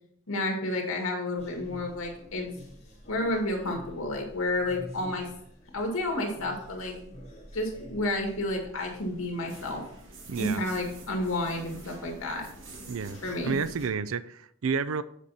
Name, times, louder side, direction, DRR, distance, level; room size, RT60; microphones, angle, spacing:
voice 1, 0.3-2.5 3.1-5.3 5.7-6.9 7.5-9.8 10.4-12.5 13.2-13.6, left 1 dB, 85° left, 2 dB, 2.0 m, -30 dB
sound 1, 1.4-13.9, equal, 30° left, 2.3 m, -48 dB
sound 2, 7.9-13.9, right 2 dB, 60° right, 1.6 m, -48 dB
voice 2, 10.3-10.6 12.9-15.0, right 5 dB, 75° right, 15 dB, 0.5 m, -31 dB
8.2 x 5.2 x 4.1 m, 0.69 s
head